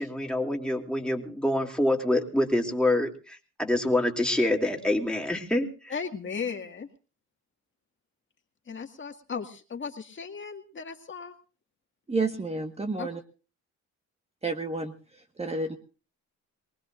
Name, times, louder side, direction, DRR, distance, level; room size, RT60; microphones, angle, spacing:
voice 1, 0.0-5.7, left 1 dB, 5° left, 1 dB, 2.8 m, -26 dB
voice 2, 5.9-6.9 8.7-11.4 13.0-13.1, left 5 dB, 40° left, 4 dB, 2.0 m, -36 dB
voice 3, 12.1-13.2 14.4-15.8, right 3 dB, 20° right, 5 dB, 1.5 m, -31 dB
23.5 x 19.5 x 2.6 m, 0.36 s
cardioid pair, 90°, 30 cm